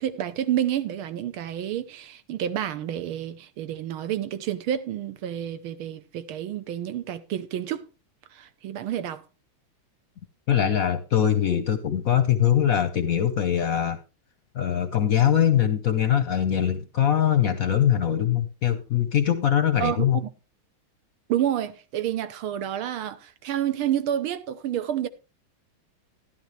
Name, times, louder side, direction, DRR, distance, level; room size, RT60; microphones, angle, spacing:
voice 1, 0.0-7.8 8.3-9.2 19.8-20.0 21.3-25.1, right 11 dB, 90° right, 1.8 m, -29 dB
voice 2, 10.5-14.0 14.5-20.2, left 9 dB, 60° left, 0.9 m, -22 dB
12.0 x 11.5 x 3.3 m
omnidirectional pair, 2.3 m